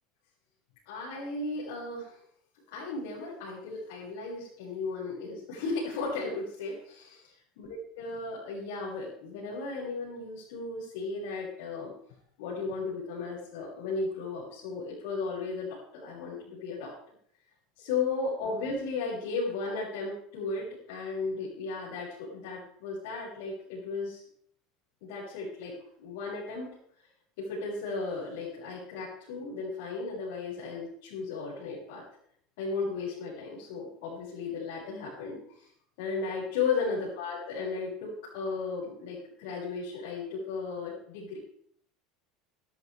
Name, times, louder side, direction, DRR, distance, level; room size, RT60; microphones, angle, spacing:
voice 1, 0.9-2.1 2.7-11.9 12.4-16.9 17.8-24.2 25.0-25.7 26.0-26.7 27.4-32.0 32.6-35.7 36.0-41.4, left 4 dB, 80° left, -8 dB, 6.5 m, -35 dB
15.0 x 13.0 x 3.6 m, 0.63 s
cardioid pair, 160°, 0 cm